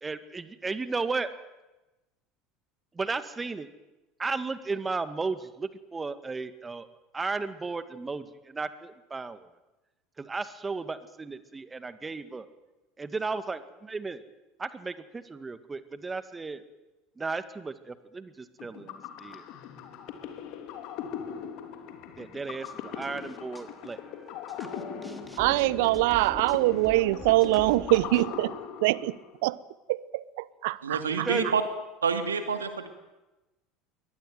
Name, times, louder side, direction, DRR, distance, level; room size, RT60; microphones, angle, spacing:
voice 1, 0.0-1.3 3.0-3.7 4.2-6.9 7.1-9.5 10.2-12.5 13.0-14.2 14.6-16.6 17.2-19.4 22.2-24.0 31.1-31.5, right 4 dB, 20° right, 2.0 m, -34 dB
sound 1, 18.6-29.4, left 8 dB, 60° left, 3.2 m, -40 dB
sound 2, 22.6-28.2, equal, ahead, 3.1 m, -44 dB
voice 2, 25.4-28.5 28.8-29.2 29.4-29.6 29.9-30.2 30.6-31.3, right 19 dB, 70° right, 0.8 m, -24 dB
voice 3, 30.8-31.6 32.0-32.9, right 6 dB, 85° right, 2.5 m, -28 dB
23.0 x 18.5 x 9.4 m
hypercardioid pair, 70°, 0 cm